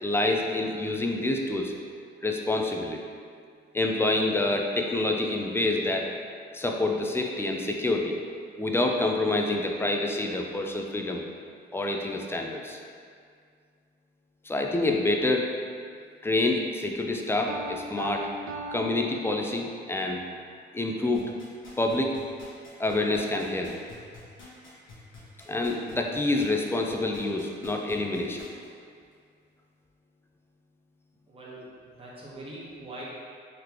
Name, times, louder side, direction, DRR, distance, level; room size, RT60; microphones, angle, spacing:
voice 1, 0.0-1.7 2.2-3.0 3.7-6.1 6.5-8.2 8.6-11.2 11.7-12.8 14.4-15.5 16.2-18.3 18.7-20.2 20.7-21.3 21.8-22.2 22.8-23.7 25.5-28.5, left 2 dB, 10° left, 2 dB, 0.4 m, -27 dB
Piano, 17.5-19.9, right 2 dB, 80° right, 0.4 m, -39 dB
sound 1, 21.1-28.6 29.1-29.2, left 3 dB, 70° left, 1.3 m, -48 dB
voice 2, 31.3-31.7 31.9-33.0, right 1 dB, 30° right, -6 dB, 1.1 m, -42 dB
4.0 x 3.1 x 2.9 m, 2.1 s
cardioid pair, 90°, 20 cm